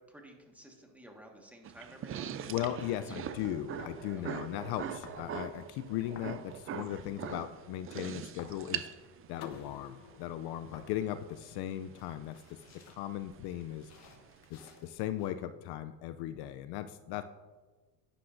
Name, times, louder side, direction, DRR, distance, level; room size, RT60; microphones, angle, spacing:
voice 1, 0.1-2.6 3.0-3.2 4.1-4.4 9.3-9.5 14.6-14.8, right 1 dB, 5° right, 1 dB, 1.6 m, -54 dB
sound 1, 1.6-14.5, right 8 dB, 30° right, 0.5 m, -42 dB
voice 2, 2.5-8.9 9.3-12.6 12.9-13.9 14.5-17.2, left 12 dB, 60° left, 11 dB, 0.5 m, -37 dB
sound 2, 3.8-15.3, left 4 dB, 35° left, 1.5 m, -57 dB
sound 3, 9.4-12.2, left 8 dB, 80° left, 1.1 m, -52 dB
11.5 x 9.9 x 2.6 m, 1.3 s
supercardioid pair, 115°, 45 cm